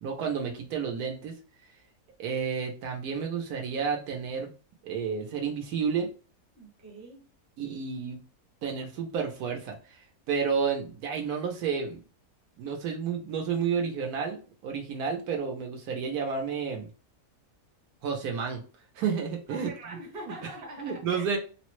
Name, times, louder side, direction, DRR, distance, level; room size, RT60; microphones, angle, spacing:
voice 1, 0.0-1.3 2.2-4.5 4.8-6.1 7.6-8.2 8.6-12.0 12.6-16.9 18.0-18.6 18.9-19.7 20.8-21.4, right 6 dB, 85° right, 1.2 m, -31 dB
voice 2, 6.5-7.3 19.5-21.4, right 1 dB, 40° right, 1.2 m, -43 dB
3.5 x 2.1 x 3.0 m
omnidirectional pair, 1.6 m